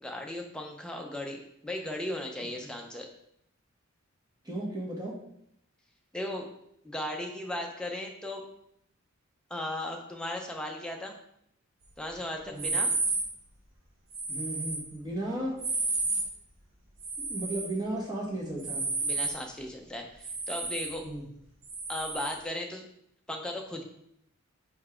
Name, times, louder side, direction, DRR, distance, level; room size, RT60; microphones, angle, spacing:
voice 1, 0.0-3.1 6.1-6.5 6.8-8.4 9.5-11.1 12.0-12.9 19.0-21.0 21.9-22.8 23.3-23.8, left 1 dB, 5° left, 1 dB, 0.7 m, -36 dB
voice 2, 4.4-5.2 12.5-12.8 14.3-15.6 17.2-18.9 21.0-21.2, right 1 dB, 20° right, -3 dB, 1.4 m, -35 dB
sound 1, 12.6-13.3 14.1-14.8 15.6-16.3 17.0-17.7 18.6-19.4 20.2-20.9 21.6-22.3, right 3 dB, 65° right, 1.2 m, -31 dB
4.7 x 4.5 x 4.4 m, 0.73 s
head